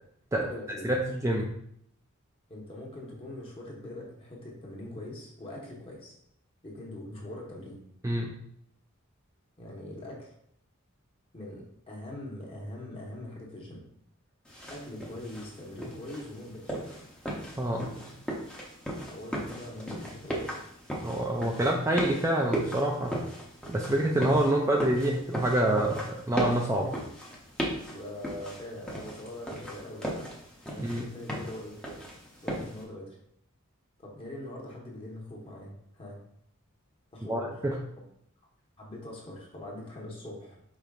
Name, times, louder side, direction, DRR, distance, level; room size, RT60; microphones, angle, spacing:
voice 1, 0.3-0.9 2.5-6.2 6.6-7.8 9.6-10.3 11.3-13.8 14.7-16.7 17.7-18.2 19.0-20.5 26.8-27.1 27.7-30.3 30.7-31.8 32.4-33.2 34.0-36.2 37.1-37.6 38.8-40.6, left 1 dB, 25° left, -2 dB, 1.1 m, -42 dB
voice 2, 0.8-1.6 8.0-8.4 17.6-17.8 21.0-23.2 23.7-26.9 30.8-31.0 37.3-37.8, right 1 dB, 15° right, 0 dB, 0.4 m, -27 dB
sound 1, 14.5-32.8, right 1 dB, 5° left, 0.8 m, -37 dB
5.1 x 4.3 x 2.4 m, 0.71 s
head